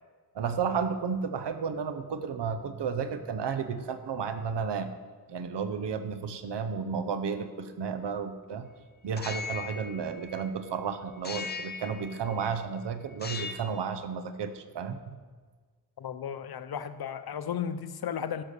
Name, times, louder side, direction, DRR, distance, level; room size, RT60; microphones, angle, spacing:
voice 1, 0.3-4.9 5.3-8.7 9.0-15.2, right 6 dB, 90° right, 10 dB, 0.8 m, -32 dB
sound 1, 9.1-10.7 11.2-12.6 13.1-13.8, left 5 dB, 25° left, 0.5 m, -39 dB
voice 2, 16.0-18.4, left 8 dB, 65° left, 11 dB, 0.6 m, -34 dB
11.5 x 5.7 x 6.6 m, 1.5 s
wide cardioid pair, 165°, 40 cm